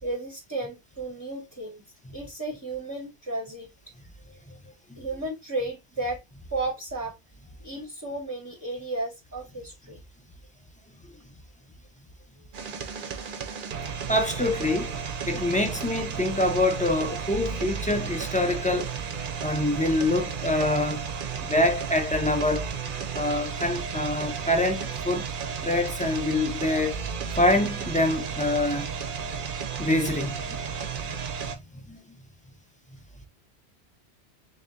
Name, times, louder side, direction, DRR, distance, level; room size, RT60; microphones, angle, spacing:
voice 1, 0.0-1.8 2.1-3.7 5.0-6.2 6.5-7.1 7.6-10.0, right 2 dB, 20° right, 0.8 m, -34 dB
sound 1, 12.5-31.6, right 6 dB, 55° right, 0.7 m, -33 dB
voice 2, 14.1-14.9 15.3-18.9 19.4-21.0 21.4-22.7 23.1-25.3 25.6-27.1 27.4-28.9 29.8-30.4 31.5-32.0, left 1 dB, 10° left, 0.4 m, -25 dB
3.5 x 2.8 x 3.6 m
omnidirectional pair, 1.1 m